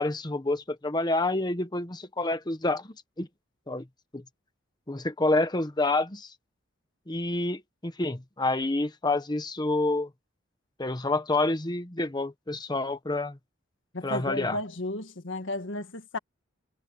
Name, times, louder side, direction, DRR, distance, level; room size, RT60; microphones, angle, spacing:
voice 1, 0.0-3.3 3.7-3.8 4.1-4.2 4.9-6.3 7.1-10.1 10.8-13.4 14.0-14.6, left 2 dB, 20° left, 1.2 m, -28 dB
voice 2, 13.9-16.2, left 2 dB, 80° left, 1.6 m, -33 dB
head